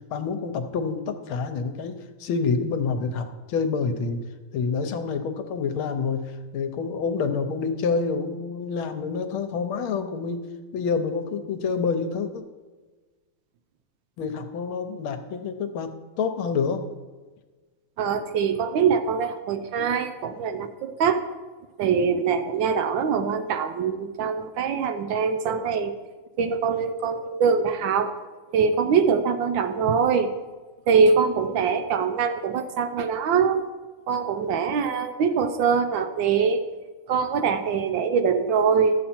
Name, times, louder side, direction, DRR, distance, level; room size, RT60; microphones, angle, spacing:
voice 1, 0.1-1.9 2.2-4.2 4.5-10.4 10.7-12.4 14.2-15.9 16.2-16.8, left 5 dB, 75° left, 8 dB, 1.6 m, -27 dB
voice 2, 18.0-21.2 21.8-25.9 26.4-28.1 28.5-30.3 30.9-33.7 34.1-36.6 37.1-38.9, right 6 dB, 70° right, 9 dB, 1.2 m, -23 dB
12.0 x 7.5 x 4.3 m, 1.3 s
omnidirectional pair, 2.3 m